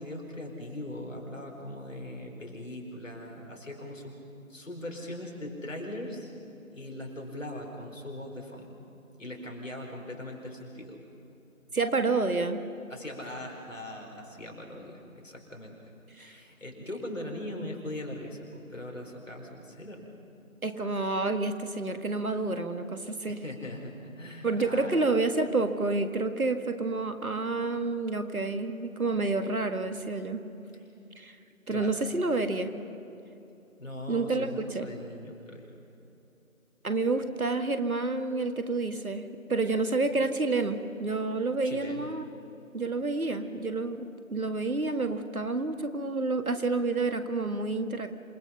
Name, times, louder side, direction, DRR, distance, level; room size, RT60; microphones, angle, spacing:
voice 1, 0.0-4.2 4.5-6.3 6.7-8.7 9.2-11.0 12.9-15.8 16.1-20.1 23.3-24.9 31.7-32.0 33.8-35.7 41.6-42.1, left 1 dB, 60° left, 1 dB, 4.5 m, -40 dB
voice 2, 11.7-12.6 16.2-16.4 20.6-23.4 24.4-30.4 31.2-31.4 31.7-32.7 34.1-34.9 36.8-42.3 42.7-48.1, right 3 dB, 80° right, 8 dB, 1.9 m, -29 dB
27.5 x 19.0 x 5.8 m, 2.9 s
figure-of-eight pair, 170°, 42 cm